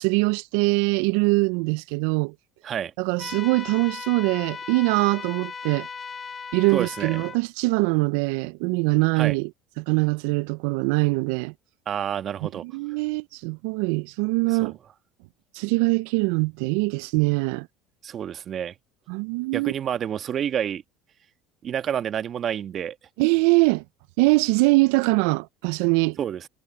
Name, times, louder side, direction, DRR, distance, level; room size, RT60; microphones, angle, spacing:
voice 1, 0.0-2.3 3.0-5.9 6.5-9.5 9.8-11.5 12.6-14.8 15.5-17.7 19.1-19.7 23.2-23.8 24.2-26.2, right 26 dB, 75° right, 0.5 m, -23 dB
sound 1, 3.2-7.4, left 5 dB, 30° left, 2.5 m, -37 dB
voice 2, 6.7-7.2 9.2-9.3 11.8-12.6 14.5-14.7 18.0-18.7 19.5-20.8 21.6-23.0 26.2-26.5, right 9 dB, 45° right, 1.6 m, -29 dB
supercardioid pair, 85°, 0 cm